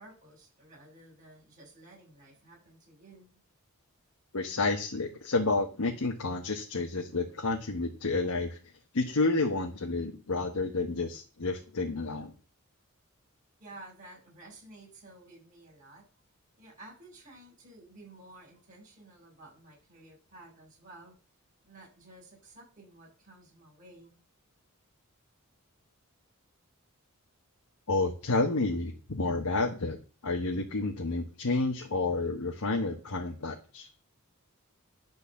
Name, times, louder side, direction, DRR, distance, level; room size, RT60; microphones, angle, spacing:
voice 1, 0.0-3.3 13.6-16.0 16.6-21.2 21.6-24.2, right 2 dB, 35° right, -2 dB, 5.8 m, -53 dB
voice 2, 4.3-8.6 8.9-12.3 27.9-30.0 30.2-33.9, left 3 dB, 90° left, 3 dB, 1.1 m, -30 dB
10.5 x 4.1 x 7.0 m, 0.36 s
head